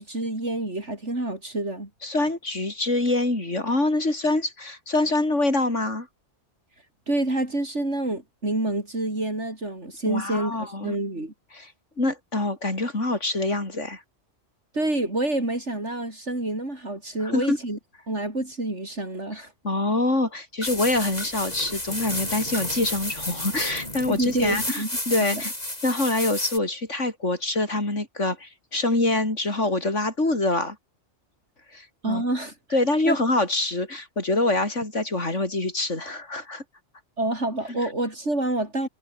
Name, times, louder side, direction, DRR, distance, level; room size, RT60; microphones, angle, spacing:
voice 1, 0.0-1.9 7.1-11.3 14.7-17.8 18.1-19.5 24.1-24.9 25.3-25.4 32.0-32.6 33.1-33.2 37.2-38.9, right 2 dB, 75° right, 6.3 m, -27 dB
voice 2, 2.0-6.1 10.0-11.0 11.5-11.7 12.0-14.0 17.2-17.6 19.6-25.5 25.8-30.8 31.7-32.2 32.7-36.6 37.7-37.8, left 2 dB, 85° left, 5.5 m, -25 dB
sound 1, 20.6-26.6, left 1 dB, 35° left, 6.0 m, -32 dB
omnidirectional pair, 1.2 m